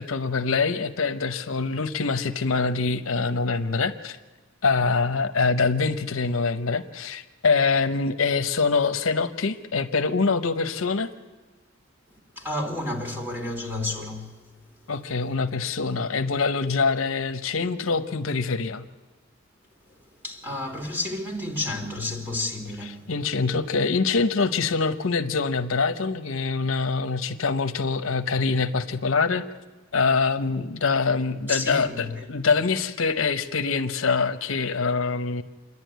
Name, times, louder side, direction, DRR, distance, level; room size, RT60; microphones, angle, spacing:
voice 1, 0.0-4.2 4.6-11.1 14.9-18.8 22.8-29.4 29.9-35.4, left 4 dB, 75° left, 0.9 m, -24 dB
voice 2, 12.4-14.4 20.2-23.0 31.5-32.3, left 2 dB, 10° right, 2.8 m, -31 dB
27.5 x 11.0 x 9.3 m
head